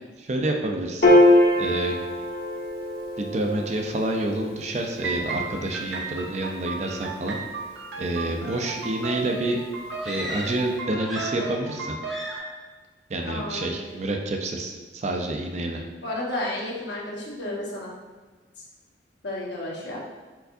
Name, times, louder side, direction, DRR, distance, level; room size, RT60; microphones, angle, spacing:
voice 1, 0.2-1.2 1.6-2.0 3.2-7.4 8.0-9.6 10.0-11.9 13.1-15.8, right 1 dB, 40° right, 2 dB, 0.4 m, -28 dB
Piano, 1.0-7.7, left 1 dB, 55° left, 0.8 m, -24 dB
sound 1, 5.0-12.4, right 4 dB, 85° right, 0.7 m, -35 dB
sound 2, 10.0-10.7 11.0-11.8 12.0-12.6, equal, ahead, 0.6 m, -36 dB
voice 2, 13.2-13.7 16.0-17.9 18.6-18.7 19.2-20.0, left 1 dB, 70° left, -4 dB, 1.1 m, -32 dB
4.6 x 4.5 x 2.6 m, 1.3 s
head